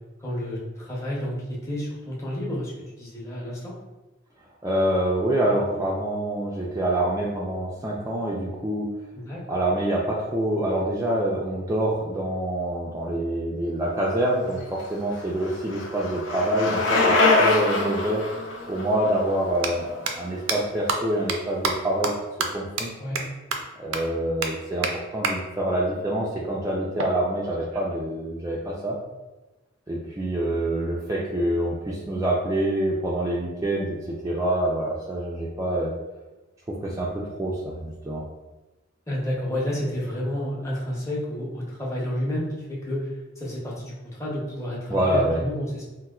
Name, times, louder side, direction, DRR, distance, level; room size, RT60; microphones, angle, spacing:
voice 1, 0.2-1.3 1.6-2.7 3.0-3.7 9.1-9.6 23.0-23.2 39.1-43.1 43.4-45.8, left 1 dB, 15° left, -6 dB, 0.7 m, -30 dB
voice 2, 4.6-8.9 9.5-18.2 18.7-22.1 22.5-22.9 23.8-29.0 29.9-35.9 36.8-38.2 44.9-45.4, right 1 dB, 15° right, -4 dB, 0.3 m, -26 dB
Bicycle, 14.6-20.6, left 3 dB, 65° left, 0.6 m, -24 dB
sound 1, 18.3-18.4 19.5-19.7 20.1-20.2 20.5-20.6 20.9-21.0 21.3-21.4 21.6-21.7 22.0-22.1 22.4-22.5 22.8-22.9 23.2-23.3 23.5-23.6 23.9-24.0 24.4-24.5 24.8-24.9 25.2-25.3 27.0-28.0, right 5 dB, 85° right, 0.4 m, -27 dB
4.1 x 2.1 x 2.3 m, 1.1 s
head